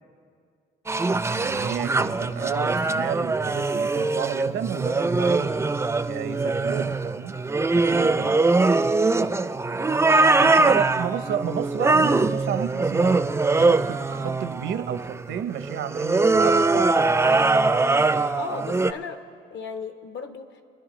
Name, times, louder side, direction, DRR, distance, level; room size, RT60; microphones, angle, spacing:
sound 1, 0.9-18.9, right 3 dB, 15° right, 0.4 m, -22 dB
voice 1, 1.4-5.5 6.0-7.4 7.7-8.4 10.4-13.3 13.6-17.5, right 9 dB, 75° right, 11 dB, 0.7 m, -31 dB
voice 2, 10.1-10.6 18.3-19.2 19.5-20.6, left 5 dB, 70° left, 7 dB, 1.1 m, -36 dB
27.0 x 10.5 x 3.1 m, 2.2 s
cardioid pair, 90°, 20 cm